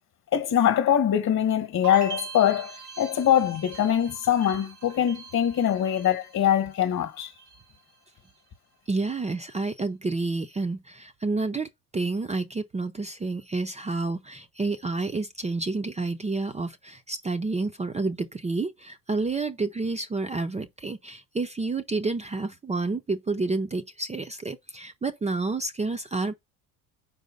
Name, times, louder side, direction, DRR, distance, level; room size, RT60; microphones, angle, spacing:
voice 1, 0.3-2.7 3.0-7.3, left 10 dB, 40° left, 1.1 m, -23 dB
sound 1, 1.8-6.9 7.2-7.8, right 5 dB, 85° right, 2.1 m, -42 dB
voice 2, 8.9-26.3, right 3 dB, 15° right, 0.5 m, -29 dB
4.5 x 4.1 x 5.1 m
supercardioid pair, 85°, 43 cm